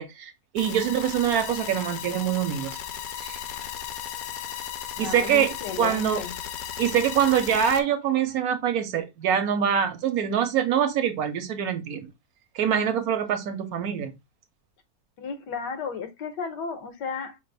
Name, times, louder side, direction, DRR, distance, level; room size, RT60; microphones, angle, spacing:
voice 1, 0.0-2.8 3.2-3.4 5.0-6.2 6.8-12.1 12.5-14.1, right 9 dB, 70° right, 1.1 m, -25 dB
sound 1, 0.6-7.8, left 10 dB, 70° left, 0.9 m, -35 dB
voice 2, 5.0-6.4 15.2-17.4, left 5 dB, 85° left, 1.5 m, -33 dB
5.3 x 2.5 x 3.2 m
omnidirectional pair, 1.8 m